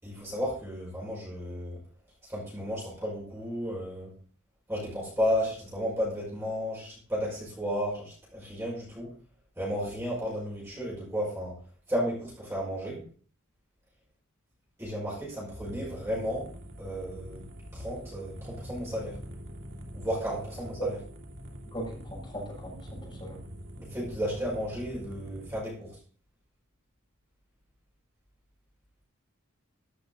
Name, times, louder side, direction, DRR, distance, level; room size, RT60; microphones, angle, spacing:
voice 1, 0.0-1.8 2.3-4.1 4.7-9.1 9.6-11.6 11.9-13.0 14.8-16.5 16.8-17.5 17.7-19.2 19.9-21.0 23.9-25.9, equal, 15° right, -6 dB, 5.7 m, -33 dB
sound 1, 15.6-25.6, equal, 60° right, 2.4 m, -44 dB
voice 2, 21.7-23.4, right 1 dB, 25° left, -5 dB, 6.8 m, -37 dB
15.0 x 7.9 x 4.0 m, 0.42 s
head